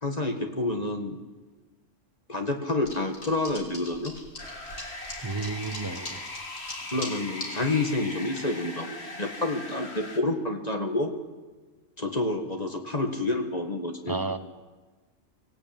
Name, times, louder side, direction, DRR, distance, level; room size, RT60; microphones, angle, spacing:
voice 1, 0.0-1.2 2.3-4.2 6.9-11.1 12.0-14.2, left 2 dB, 30° left, 4 dB, 1.9 m, -29 dB
sound 1, 2.8-7.6 7.9-8.4, left 1 dB, 85° left, 4.2 m, -40 dB
sound 2, 4.4-10.2, left 2 dB, 55° left, 2.4 m, -40 dB
voice 2, 5.2-6.2 14.1-14.4, right 3 dB, 15° right, 8 dB, 1.1 m, -31 dB
25.0 x 16.0 x 8.9 m, 1.3 s
omnidirectional pair, 1.3 m